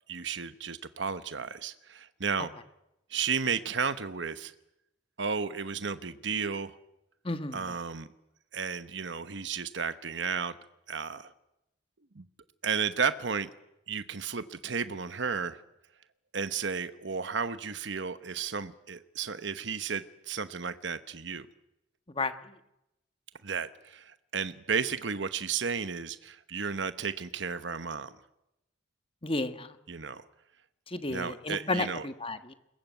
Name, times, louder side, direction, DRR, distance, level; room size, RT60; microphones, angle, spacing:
voice 1, 0.1-2.5 3.1-4.5 5.2-6.7 7.5-8.1 8.5-10.5 10.9-11.3 12.1-12.3 12.6-13.5 13.9-15.6 16.3-21.5 23.4-28.1 29.9-30.2 31.1-32.1, right 6 dB, 65° right, 12 dB, 1.0 m, -33 dB
voice 2, 7.2-7.6 22.2-22.3 29.2-29.7 30.9-32.5, left 2 dB, 30° left, 10 dB, 1.4 m, -32 dB
22.0 x 21.0 x 9.3 m, 0.87 s
head